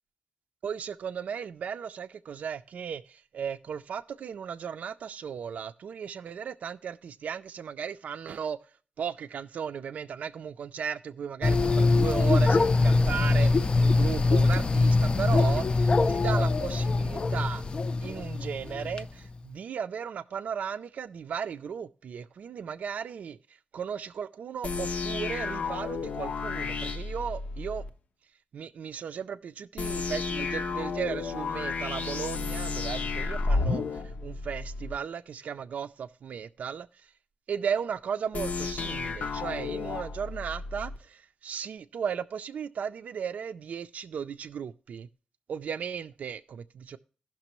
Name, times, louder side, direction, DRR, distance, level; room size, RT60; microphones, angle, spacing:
voice 1, 0.6-8.6 9.0-17.6 18.0-27.8 28.5-37.1 37.5-45.1 45.5-47.0, right 7 dB, 80° right, 0.4 m, -36 dB
sound 1, 11.4-19.0, left 3 dB, 40° left, 0.4 m, -23 dB
sound 2, 24.6-27.9 29.8-35.0 38.3-41.0, left 4 dB, 80° left, 0.7 m, -32 dB
16.0 x 5.9 x 3.0 m
wide cardioid pair, 95°, 2 cm